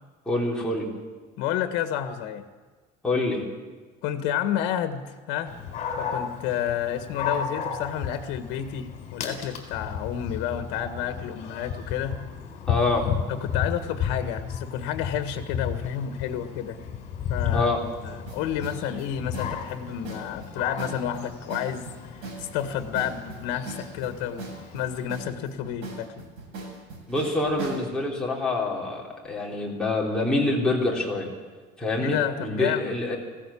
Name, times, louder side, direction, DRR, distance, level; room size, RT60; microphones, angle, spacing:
voice 1, 0.3-0.9 3.0-3.4 12.7-13.1 17.5-17.8 27.1-31.3 31.8-33.2, left 2 dB, 5° left, -4 dB, 3.6 m, -26 dB
voice 2, 1.4-2.4 4.0-5.5 6.0-12.2 13.3-16.8 17.3-17.7 18.0-21.9 22.4-26.1 31.9-33.0, left 10 dB, 80° left, 8 dB, 1.6 m, -30 dB
Dog, 5.5-25.1, left 7 dB, 45° left, 4.0 m, -34 dB
sound 1, 18.3-27.9, right 3 dB, 80° right, 7.9 m, -40 dB
19.0 x 16.5 x 8.6 m, 1.4 s
cardioid pair, 170°, 17 cm